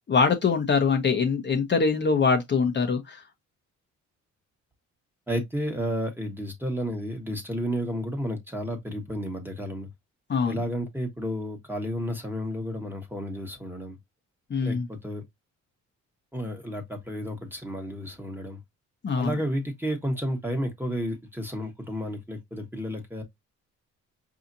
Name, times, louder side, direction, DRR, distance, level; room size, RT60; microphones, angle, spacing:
voice 1, 0.1-3.2 10.3-10.6 14.5-14.9 19.0-19.3, left 5 dB, 35° left, 0.9 m, -23 dB
voice 2, 5.3-9.9 10.4-13.9 14.6-15.2 16.3-18.6 19.2-23.2, equal, 5° right, 1.3 m, -32 dB
4.9 x 2.9 x 2.6 m
cardioid pair, 90°, 30 cm